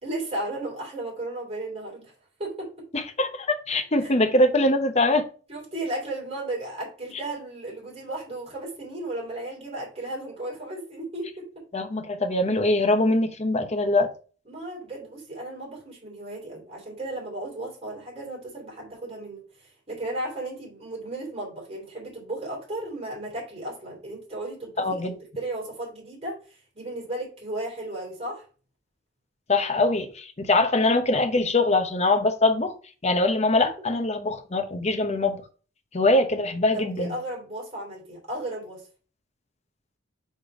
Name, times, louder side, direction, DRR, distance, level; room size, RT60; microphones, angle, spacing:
voice 1, 0.0-2.1 2.4-2.9 4.0-4.1 5.5-11.5 14.4-28.4 36.7-38.8, right 1 dB, 35° right, 3.3 m, -35 dB
voice 2, 2.9-5.3 11.7-14.1 24.8-25.1 29.5-32.7 33.0-35.4 35.9-37.1, left 2 dB, 35° left, 0.9 m, -23 dB
5.2 x 4.3 x 5.0 m
head